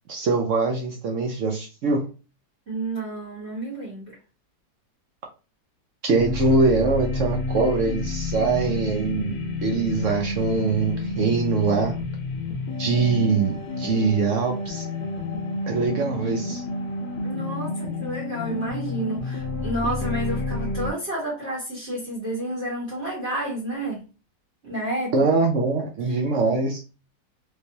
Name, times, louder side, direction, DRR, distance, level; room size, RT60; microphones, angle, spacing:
voice 1, 0.1-2.1 6.0-9.4 9.6-12.0 12.8-14.9 15.7-16.6 25.1-26.8, right 4 dB, 70° right, 2 dB, 0.7 m, -23 dB
voice 2, 2.7-4.2 17.2-24.0 24.6-25.1, right 1 dB, 40° right, -6 dB, 1.5 m, -30 dB
sound 1, 6.1-20.9, left 3 dB, 60° left, 0.7 m, -30 dB
3.2 x 3.2 x 2.7 m, 0.32 s
omnidirectional pair, 1.9 m